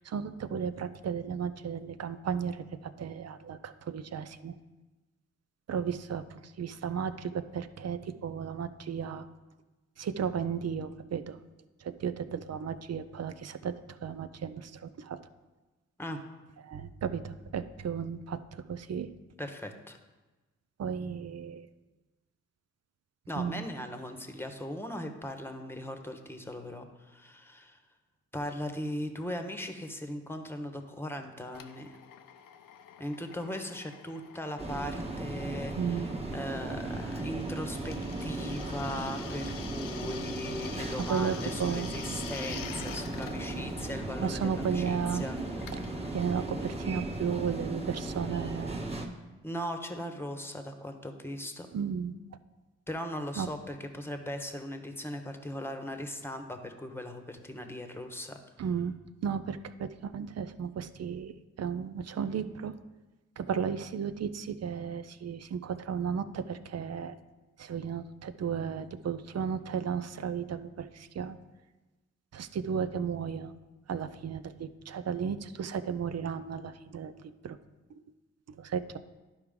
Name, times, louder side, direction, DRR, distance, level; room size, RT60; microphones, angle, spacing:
voice 1, 0.0-4.6 5.7-9.3 10.0-11.4 11.8-13.7 14.0-15.2 16.6-19.1 20.8-21.7 23.4-23.6 35.8-36.2 41.1-41.9 44.2-45.2 45.7-45.8 46.1-48.8 51.7-52.1 53.4-53.5 58.6-58.9 59.2-62.7 63.4-67.1 67.6-71.4 72.3-73.5 73.9-77.6 77.9-78.0 78.6-79.0, right 7 dB, 50° right, 12 dB, 0.5 m, -34 dB
voice 2, 19.4-20.0 23.3-27.8 28.3-31.9 33.0-36.1 36.3-45.9 49.4-51.7 52.9-58.4, left 1 dB, 5° left, 6 dB, 1.1 m, -38 dB
Drill, 31.5-47.9, left 8 dB, 75° left, 0.6 m, -48 dB
sound 1, 34.6-49.1, right 2 dB, 20° right, 1.5 m, -36 dB
11.5 x 4.6 x 3.7 m, 1.2 s
supercardioid pair, 45°, 33 cm